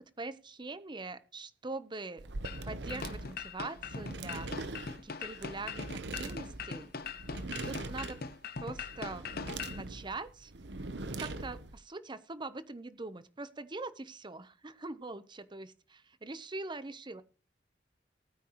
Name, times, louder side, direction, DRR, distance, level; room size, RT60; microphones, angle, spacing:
voice 1, 0.2-2.3 2.6-4.5 5.0-5.8 6.1-6.9 7.6-8.2 8.6-9.3 9.7-10.5 11.2-17.2, right 3 dB, 25° right, 13 dB, 0.8 m, -42 dB
sound 1, 2.2-11.8, right 2 dB, 75° right, 0.9 m, -42 dB
sound 2, 2.4-9.8, left 5 dB, 60° left, 0.8 m, -41 dB
19.0 x 9.2 x 3.1 m, 0.36 s
head